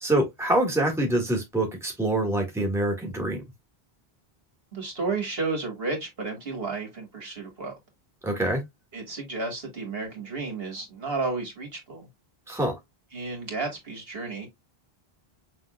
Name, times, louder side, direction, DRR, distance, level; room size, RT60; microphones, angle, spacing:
voice 1, 0.0-3.4 8.2-8.6 12.5-12.7, right 1 dB, 5° right, 1.8 m, -25 dB
voice 2, 4.7-7.7 8.9-12.1 13.1-14.5, right 3 dB, 70° right, 2.3 m, -32 dB
6.1 x 3.6 x 2.4 m
omnidirectional pair, 1.0 m